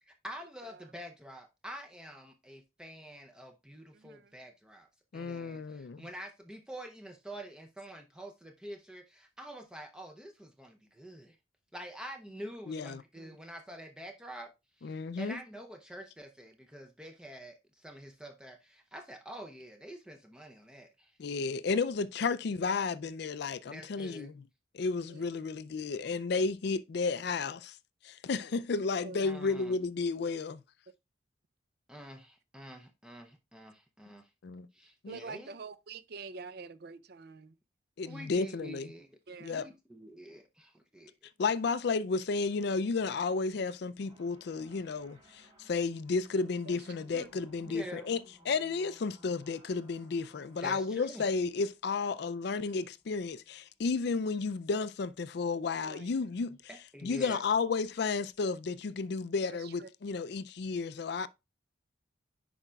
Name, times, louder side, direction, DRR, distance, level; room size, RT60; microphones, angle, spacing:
voice 1, 0.0-4.9 5.1-11.4 11.7-14.5 14.8-21.2 23.7-24.3 29.2-29.8 31.9-34.3 34.7-35.6 38.0-41.1 47.6-48.1 50.6-51.2 56.7-57.4, equal, 5° right, 0.5 m, -47 dB
voice 2, 3.9-4.3 13.2-13.4 25.1-25.3 28.9-29.2 35.1-37.5 38.1-38.2 39.3-39.7 46.7-46.9 47.1-47.3 51.4-51.5 55.8-56.1 59.5-59.9, right 4 dB, 50° right, 0.5 m, -46 dB
voice 3, 5.1-6.1 12.7-13.0 14.8-15.4 21.2-24.4 24.7-27.8 28.0-30.6 34.4-34.7 35.0-35.2 38.0-38.9 39.4-39.7 41.4-56.6 57.0-61.3, left 4 dB, 55° left, 0.4 m, -32 dB
sound 1, 44.0-53.6 54.1-54.7 55.2-55.3 55.6-55.8 56.0-56.1 56.5-56.6 57.7-58.4, equal, 25° right, 1.7 m, -60 dB
9.9 x 5.0 x 2.3 m
head